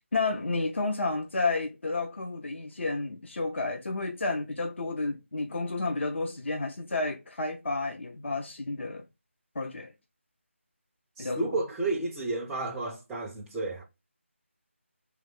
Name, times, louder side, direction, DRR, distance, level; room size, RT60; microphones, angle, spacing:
voice 1, 0.1-9.0 9.6-9.9 11.2-11.4, left 3 dB, 60° left, 0.6 m, -31 dB
voice 2, 11.2-13.8, right 2 dB, 5° right, 0.3 m, -32 dB
3.3 x 3.2 x 3.6 m
figure-of-eight pair, 160°, 7 cm